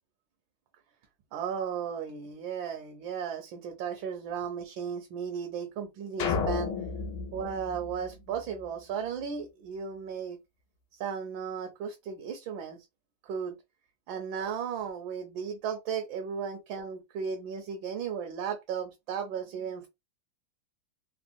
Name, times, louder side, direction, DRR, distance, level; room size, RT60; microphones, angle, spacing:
voice 1, 1.3-6.7 7.3-10.4 11.0-12.9 13.2-13.6 14.1-19.9, right 7 dB, 75° right, 1.4 m, -35 dB
sound 1, 6.2-8.7, left 5 dB, 75° left, 1.5 m, -32 dB
3.6 x 2.1 x 2.5 m
omnidirectional pair, 2.3 m